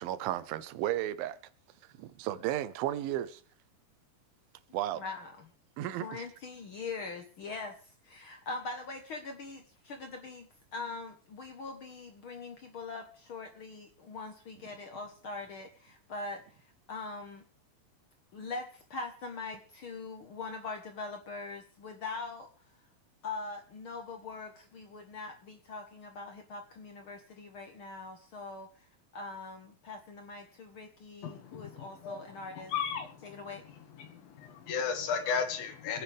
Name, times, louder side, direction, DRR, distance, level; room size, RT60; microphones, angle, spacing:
voice 1, 0.0-1.4 2.0-3.4 4.7-5.0 5.8-6.2, right 13 dB, 90° right, 2.6 m, -34 dB
voice 2, 4.9-5.5 6.0-7.8 8.0-16.4 16.9-17.4 18.3-22.5 23.2-28.7 29.1-32.7 33.2-33.6, left 3 dB, 65° left, 1.3 m, -42 dB
voice 3, 31.2-32.2 32.5-33.4 34.0-36.0, left 6 dB, 85° left, 3.5 m, -35 dB
25.5 x 9.7 x 3.5 m
omnidirectional pair, 4.1 m